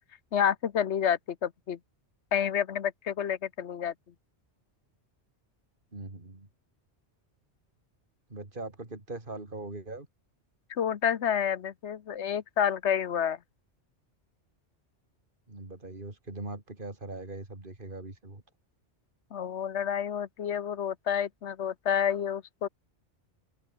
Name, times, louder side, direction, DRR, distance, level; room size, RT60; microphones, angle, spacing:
voice 1, 0.3-1.8 2.3-3.9 10.7-13.4 19.3-22.7, left 8 dB, 75° left, 1.2 m, -29 dB
voice 2, 5.9-6.5 8.3-10.1 15.5-18.4, right 2 dB, 45° right, 3.6 m, -41 dB
open air
omnidirectional pair, 1.2 m